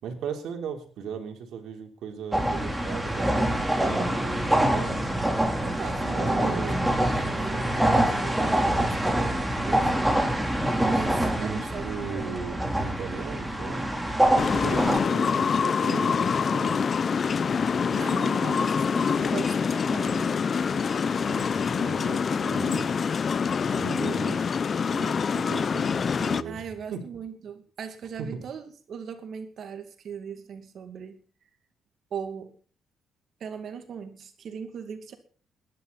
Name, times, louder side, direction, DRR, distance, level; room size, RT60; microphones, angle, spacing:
voice 1, 0.0-5.3 6.1-6.8 11.3-13.8 14.5-16.8 21.2-22.9 23.7-24.5 24.9-26.6 26.9-27.0 28.2-28.4, right 6 dB, 80° right, 2 dB, 3.7 m, -37 dB
sound 1, 2.3-15.0, right 1 dB, 5° right, 3.5 m, -25 dB
voice 2, 5.6-6.6 6.9-10.2 10.9-11.9 12.1-12.3 17.7-20.4 26.4-31.2 32.1-32.6 33.4-35.1, right 7 dB, 60° right, 7 dB, 2.3 m, -39 dB
sound 2, 14.4-26.4, left 6 dB, 45° left, 0.6 m, -25 dB
20.0 x 11.5 x 4.2 m, 0.42 s
cardioid pair, 90°, 0 cm